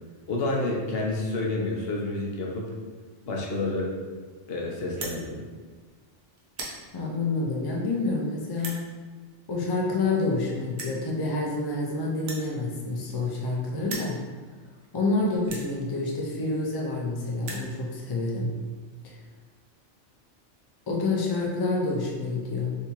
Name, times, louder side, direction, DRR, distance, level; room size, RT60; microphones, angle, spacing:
voice 1, 0.3-2.7 3.3-3.9 4.5-5.4, left 2 dB, 60° left, -2 dB, 0.8 m, -29 dB
sound 1, 4.9-5.2 5.9-6.1 6.4-6.8 7.5-7.6 8.5-8.8 9.9-10.0 10.2-10.3 10.7-11.0 12.2-13.5 13.8-14.1 14.8-14.9 15.4-15.7 16.6-16.7 16.9-17.0 17.3-17.7, right 3 dB, 65° right, 0.9 m, -38 dB
voice 2, 6.9-8.9 9.5-14.2 14.9-18.5 19.0-19.1 20.9-22.8, left 3 dB, 40° left, -3 dB, 0.3 m, -28 dB
3.5 x 2.8 x 2.9 m, 1.4 s
omnidirectional pair, 1.2 m